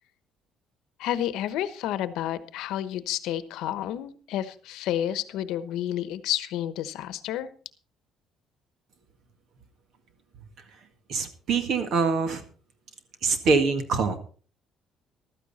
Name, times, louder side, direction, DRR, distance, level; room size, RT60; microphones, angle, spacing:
voice 1, 1.0-7.5, left 12 dB, 75° left, 14 dB, 1.1 m, -30 dB
voice 2, 11.1-12.4 13.2-14.2, right 4 dB, 50° right, 9 dB, 1.9 m, -24 dB
14.5 x 13.0 x 4.2 m, 0.40 s
cardioid pair, 175°, 0 cm